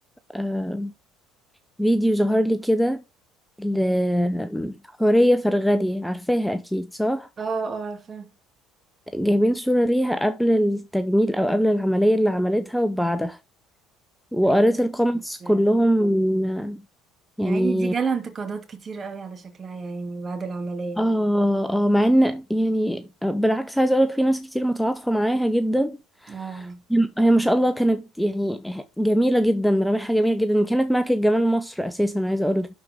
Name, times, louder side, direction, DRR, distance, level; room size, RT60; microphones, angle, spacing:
voice 1, 0.3-0.9 1.8-3.0 3.6-7.3 9.1-13.4 14.3-16.8 17.4-17.9 21.0-32.7, equal, ahead, 0.7 m, -22 dB
voice 2, 7.4-8.3 14.4-14.6 15.4-15.7 17.4-21.0 26.3-26.8, right 5 dB, 35° right, 2.4 m, -31 dB
11.5 x 4.6 x 3.6 m
hypercardioid pair, 65°, 0 cm